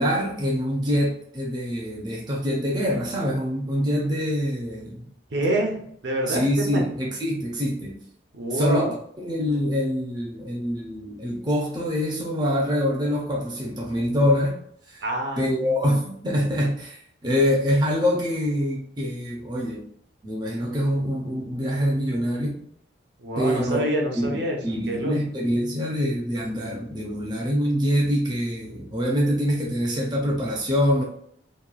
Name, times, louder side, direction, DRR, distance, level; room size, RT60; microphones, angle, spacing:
voice 1, 0.0-5.1 6.3-7.9 8.5-8.9 9.2-14.6 14.9-15.0 15.4-17.0 17.2-19.8 20.2-22.6 23.4-23.8 24.1-24.3 24.6-31.0, equal, 25° right, -2 dB, 0.4 m, -25 dB
voice 2, 5.3-5.8 6.0-6.8 8.3-8.9 15.0-15.7 23.2-25.1, right 1 dB, 70° right, 1 dB, 0.6 m, -27 dB
2.9 x 2.2 x 2.3 m, 0.66 s
head